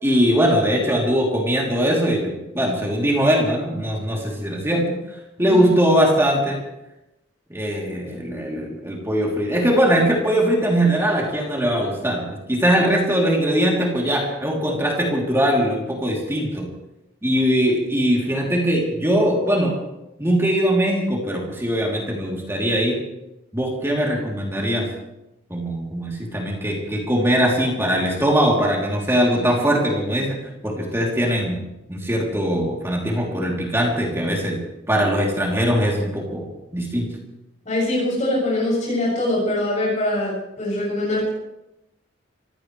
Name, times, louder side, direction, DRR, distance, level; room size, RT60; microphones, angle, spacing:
voice 1, 0.0-4.9 5.4-6.6 7.5-16.7 17.2-19.7 20.2-23.0 23.5-24.9 25.5-30.4 30.6-31.6 31.9-34.6 34.9-36.5 36.7-37.1, equal, 15° right, -2 dB, 3.3 m, -21 dB
voice 2, 37.7-41.3, left 1 dB, 40° left, -6 dB, 7.5 m, -23 dB
25.0 x 16.5 x 3.4 m, 0.91 s
head